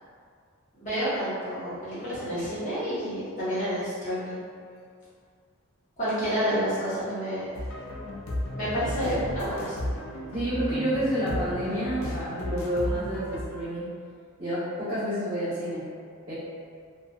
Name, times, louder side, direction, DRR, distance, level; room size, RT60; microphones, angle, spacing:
voice 1, 0.7-4.4 6.0-7.5 8.5-9.9, equal, 35° left, -12 dB, 0.9 m, -29 dB
sound 1, 7.5-13.5, left 1 dB, 70° left, 0.4 m, -34 dB
voice 2, 10.3-13.9 14.4-15.8 16.3-16.4, equal, 25° right, -19 dB, 0.9 m, -29 dB
2.6 x 2.3 x 2.2 m, 2.2 s
head